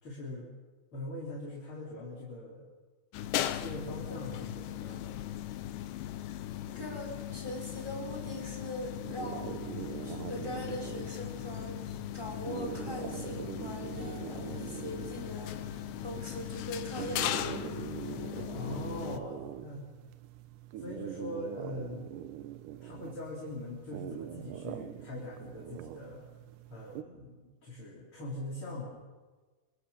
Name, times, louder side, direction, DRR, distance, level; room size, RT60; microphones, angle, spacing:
voice 1, 0.0-0.5 0.9-2.7 3.6-5.3 18.5-19.8 20.8-22.1 22.8-26.3 26.7-29.0, left 1 dB, 30° left, -3 dB, 4.2 m, -42 dB
sound 1, 3.1-19.2, left 12 dB, 80° left, 3.2 m, -38 dB
voice 2, 6.7-11.8 12.1-17.8, left 1 dB, 5° right, 1 dB, 4.4 m, -42 dB
sound 2, 9.0-27.0, right 11 dB, 75° right, 1.9 m, -43 dB
25.5 x 25.0 x 7.2 m, 1.3 s
omnidirectional pair, 5.0 m